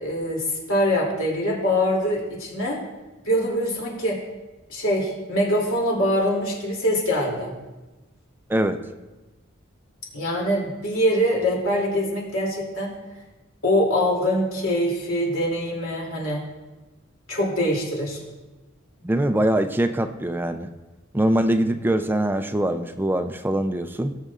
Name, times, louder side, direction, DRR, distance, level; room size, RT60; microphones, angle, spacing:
voice 1, 0.0-2.8 3.2-4.2 4.7-7.5 10.1-12.9 13.6-16.4 17.3-18.2, equal, 80° left, -2 dB, 2.7 m, -23 dB
voice 2, 19.0-20.7 21.1-24.2, right 1 dB, 10° right, 8 dB, 0.4 m, -23 dB
19.0 x 6.6 x 2.4 m, 1.1 s
head